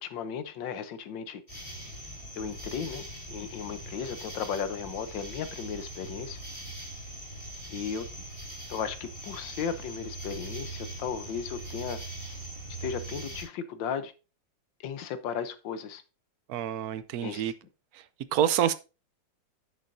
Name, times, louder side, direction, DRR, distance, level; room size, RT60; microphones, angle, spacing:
voice 1, 0.0-1.4 2.4-6.4 7.7-8.1 8.7-12.0 12.8-14.1 14.8-16.0 17.2-17.4, left 7 dB, 80° left, 1.5 m, -35 dB
sound 1, 1.5-13.4, right 1 dB, 30° left, 4.1 m, -41 dB
voice 2, 16.5-17.5 17.9-18.0 18.3-18.7, right 10 dB, 70° right, 0.9 m, -27 dB
10.0 x 7.2 x 2.6 m
omnidirectional pair, 2.0 m